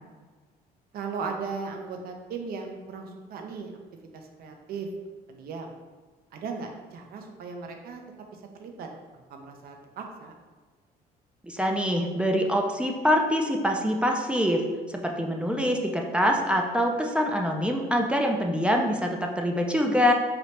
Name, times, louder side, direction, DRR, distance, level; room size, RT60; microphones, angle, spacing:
voice 1, 0.9-3.7 4.1-4.9 5.3-5.7 6.3-8.0 8.3-10.3, right 5 dB, 65° right, 3 dB, 0.7 m, -37 dB
voice 2, 11.4-20.1, equal, 5° right, 1 dB, 0.4 m, -25 dB
4.9 x 2.8 x 3.2 m, 1.4 s
cardioid pair, 110°, 17 cm